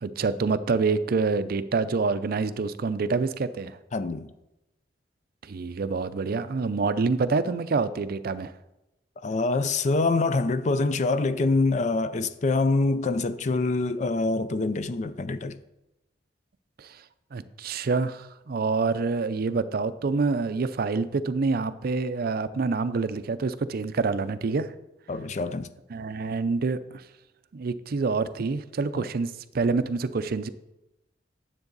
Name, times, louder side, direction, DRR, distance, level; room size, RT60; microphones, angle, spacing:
voice 1, 0.0-3.8 5.4-8.5 16.8-17.0 17.3-24.7 25.9-27.0 27.5-30.5, right 4 dB, 55° right, 0.5 m, -27 dB
voice 2, 3.9-4.3 9.2-15.6 25.1-25.7 28.9-29.1, left 3 dB, 40° left, 0.4 m, -25 dB
9.7 x 7.5 x 3.9 m
head